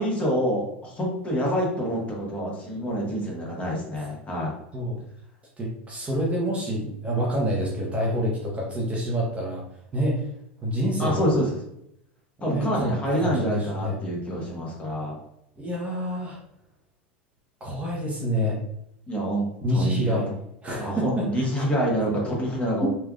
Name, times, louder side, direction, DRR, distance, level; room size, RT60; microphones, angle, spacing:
voice 1, 0.0-4.5 11.0-11.6 12.4-15.2 19.1-20.2 20.8-22.9, equal, 20° left, -3 dB, 1.2 m, -27 dB
voice 2, 5.6-9.6 9.9-10.3 10.6-11.3 12.5-14.0 15.6-16.4 17.6-18.6 19.6-20.3 20.6-21.6 22.8-22.9, equal, 20° right, -3 dB, 0.8 m, -27 dB
3.3 x 2.3 x 2.4 m, 0.77 s
hypercardioid pair, 95°, 6 cm